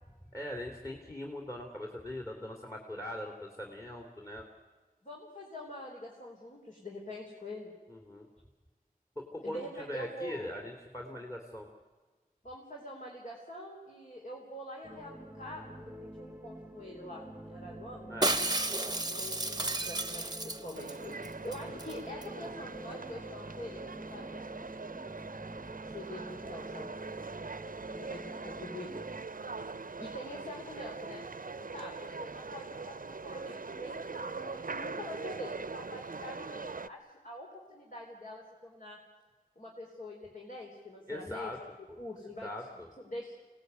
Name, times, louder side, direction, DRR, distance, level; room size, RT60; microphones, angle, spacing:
voice 1, 0.3-4.4 7.9-8.3 9.2-11.7 18.1-18.4 41.1-41.6 41.9-42.0 42.4-42.9, left 1 dB, 20° left, 3 dB, 2.9 m, -41 dB
voice 2, 5.0-7.7 9.4-10.6 11.1-11.2 12.4-18.1 19.0-25.0 25.8-26.9 27.9-28.9 30.0-39.0 39.6-41.5 42.0-42.5 43.0-43.3, left 1 dB, 60° left, -1 dB, 4.1 m, -45 dB
sound 1, 14.8-29.2, right 1 dB, 10° right, 1.2 m, -48 dB
Shatter, 18.2-21.0 21.2-21.3 21.5-21.9 22.2-22.3, right 2 dB, 25° right, 0.9 m, -32 dB
sound 2, 20.7-36.9, right 4 dB, 65° right, 0.7 m, -42 dB
25.5 x 18.5 x 9.4 m, 1.4 s
wide cardioid pair, 50°, 15 cm